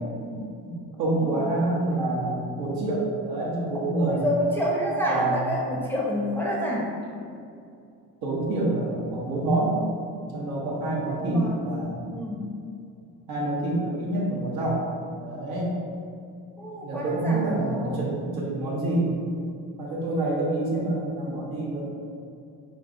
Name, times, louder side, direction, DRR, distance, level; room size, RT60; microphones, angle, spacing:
voice 1, 0.2-4.2 5.1-5.5 8.2-9.8 10.3-12.0 13.3-14.8 15.2-15.7 16.8-19.1 19.8-21.9, right 2 dB, 65° right, -5 dB, 1.4 m, -27 dB
voice 2, 1.2-1.5 3.7-6.9 11.2-11.7 12.1-12.5 16.6-18.0, equal, 5° left, -5 dB, 0.8 m, -28 dB
5.9 x 2.4 x 3.8 m, 2.5 s
cardioid pair, 85°, 39 cm